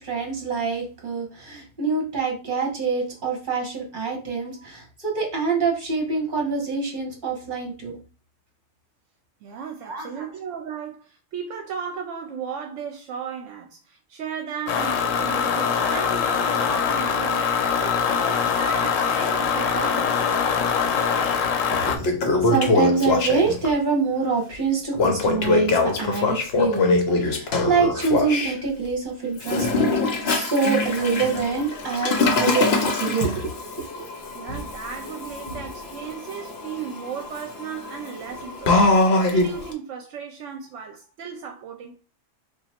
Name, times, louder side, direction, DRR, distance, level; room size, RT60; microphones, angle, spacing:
voice 1, 0.0-8.0 9.8-10.2 21.7-29.7 30.0-33.6 33.9-34.1, right 5 dB, 40° right, 1.2 m, -26 dB
voice 2, 9.4-17.5 17.8-20.6 34.3-38.9 39.3-42.0, right 7 dB, 80° right, 0.9 m, -35 dB
sound 1, 14.7-22.0, left 6 dB, 85° left, 1.0 m, -23 dB
Toilet flush, 21.2-21.3 21.8-23.7 25.0-28.5 29.4-39.7, left 3 dB, 60° left, 0.9 m, -23 dB
2.9 x 2.4 x 4.2 m
omnidirectional pair, 1.3 m